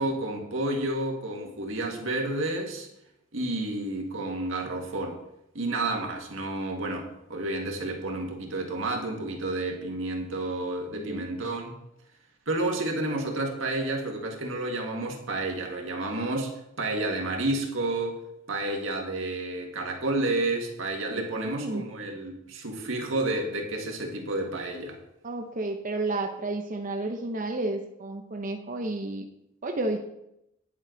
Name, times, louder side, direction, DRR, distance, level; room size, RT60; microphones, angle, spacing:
voice 1, 0.0-2.9 3.3-5.2 5.5-11.7 12.5-16.5 16.8-18.2 18.5-25.0, right 2 dB, 85° right, 1 dB, 1.8 m, -30 dB
voice 2, 10.9-11.2 21.1-21.8 25.2-29.2 29.6-30.0, right 2 dB, 45° right, 3 dB, 0.7 m, -31 dB
10.0 x 7.5 x 3.9 m, 0.82 s
head